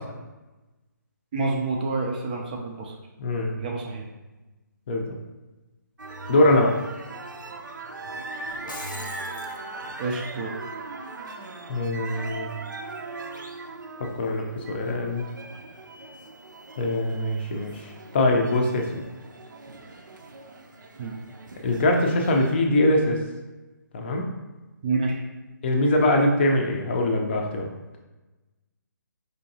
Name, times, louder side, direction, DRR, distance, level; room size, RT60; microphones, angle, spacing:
voice 1, 1.3-2.9 3.6-4.1 10.0-10.5 21.0-21.1 24.8-25.2, right 3 dB, 25° right, 0 dB, 0.4 m, -28 dB
voice 2, 3.2-3.6 4.9-5.1 6.3-6.7 11.7-12.5 14.0-15.3 16.8-19.0 21.6-23.2 23.9-24.2 25.6-27.7, left 1 dB, 35° left, 2 dB, 0.5 m, -23 dB
sound 1, 6.0-22.5, right 3 dB, 75° right, 0.5 m, -39 dB
Shatter, 8.5-9.6, left 3 dB, 80° left, 0.6 m, -40 dB
4.9 x 2.6 x 2.7 m, 1.1 s
figure-of-eight pair, 150°, 11 cm